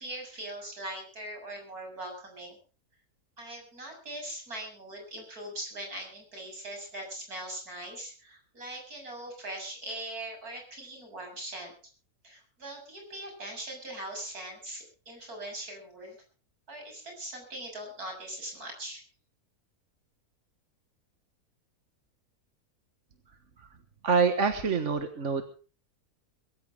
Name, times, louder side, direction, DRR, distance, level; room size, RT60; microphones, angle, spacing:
voice 1, 0.0-2.6 3.4-11.7 12.2-16.2 16.7-19.0, right 1 dB, 75° right, 2 dB, 7.7 m, -41 dB
voice 2, 24.0-25.4, right 5 dB, 55° right, 8 dB, 1.7 m, -26 dB
22.5 x 14.5 x 3.6 m, 0.38 s
omnidirectional pair, 1.6 m